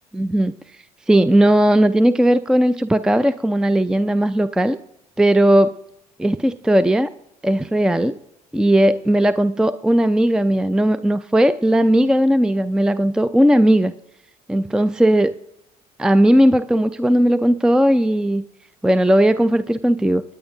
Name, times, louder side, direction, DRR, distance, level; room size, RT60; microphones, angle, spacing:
voice 1, 0.1-0.5 1.1-4.8 5.2-5.7 6.2-7.1 7.4-8.2 8.5-13.9 14.5-15.3 16.0-18.4 18.8-20.2, right 1 dB, 5° right, 14 dB, 0.4 m, -17 dB
24.5 x 9.6 x 2.7 m, 0.80 s
hypercardioid pair, 70°, 19 cm